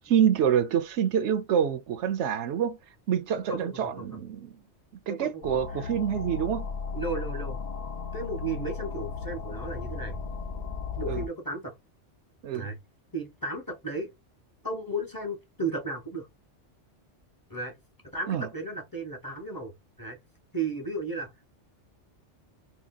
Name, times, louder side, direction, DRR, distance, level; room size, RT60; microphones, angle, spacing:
voice 1, 0.1-2.8 3.1-4.5 5.1-6.7 11.1-11.2 12.4-12.7 18.3-18.4, right 9 dB, 75° right, 0.9 m, -26 dB
voice 2, 3.5-4.2 5.1-5.9 6.9-7.6 8.1-10.2 11.0-11.7 12.5-12.8 13.1-14.1 14.6-16.3 17.5-17.7 18.1-20.2 20.5-21.5, right 2 dB, 20° left, 0.9 m, -34 dB
sound 1, 5.4-11.3, left 5 dB, 65° left, 0.4 m, -35 dB
2.8 x 2.1 x 3.7 m
omnidirectional pair, 1.2 m